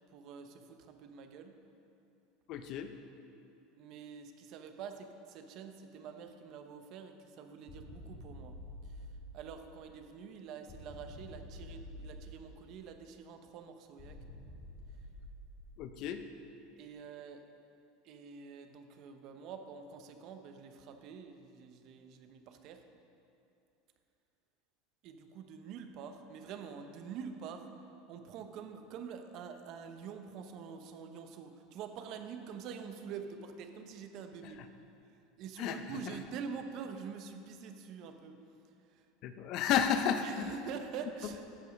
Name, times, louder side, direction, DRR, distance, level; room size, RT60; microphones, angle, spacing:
voice 1, 0.1-1.6 3.7-8.5 9.0-9.1 9.3-14.2 16.8-17.4 18.0-22.8 25.0-27.7 28.1-34.6 35.4-38.4 38.9-39.0 40.2-41.4, right 6 dB, 50° right, 7 dB, 0.9 m, -46 dB
voice 2, 2.5-2.9 15.8-16.2 34.6-34.7 35.6-36.0 39.2-40.5, left 8 dB, 50° left, 8 dB, 0.7 m, -32 dB
sound 1, 7.7-10.0 10.7-13.0 14.0-16.2, left 1 dB, 35° left, 2.6 m, -49 dB
14.0 x 5.5 x 5.2 m, 2.7 s
supercardioid pair, 135°, 0 cm